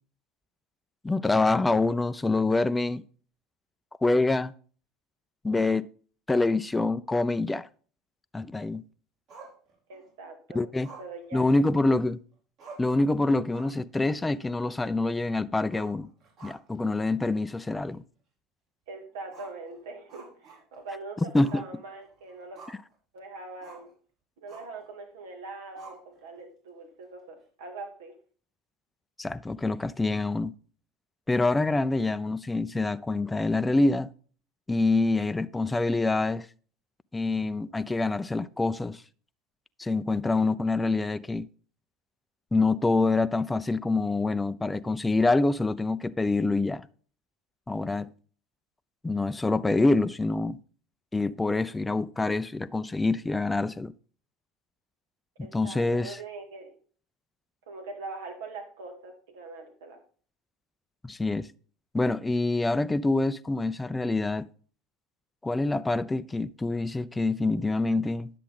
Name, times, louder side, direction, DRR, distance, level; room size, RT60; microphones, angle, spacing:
voice 1, 1.0-3.0 4.0-4.5 5.4-5.9 6.3-7.7 8.3-8.8 10.5-10.9 11.3-12.2 12.8-16.1 16.4-18.0 21.3-21.6 29.2-30.5 31.3-34.1 34.7-36.5 37.1-39.0 39.8-41.5 42.5-46.9 47.7-48.1 49.0-50.6 51.1-53.9 55.5-56.2 61.0-61.5 61.9-64.5 65.4-68.3, left 2 dB, 15° left, 0.5 m, -26 dB
Growling, 9.3-10.1 10.8-12.1 12.3-12.4 12.6-13.0 13.4-13.9 14.2-14.3 15.6-16.9 17.2-17.3 17.9-18.0 19.3-20.9 21.4-21.7 22.0-22.9 23.6-23.9 24.5-24.8 25.8-26.4, right 4 dB, 60° right, 5.2 m, -50 dB
voice 2, 9.9-10.6 11.0-11.5 18.9-22.6 23.1-23.9 24.4-28.2 55.4-56.7 57.7-60.0, right 3 dB, 80° right, 2.5 m, -42 dB
10.5 x 7.5 x 3.8 m
hypercardioid pair, 80°, 0 cm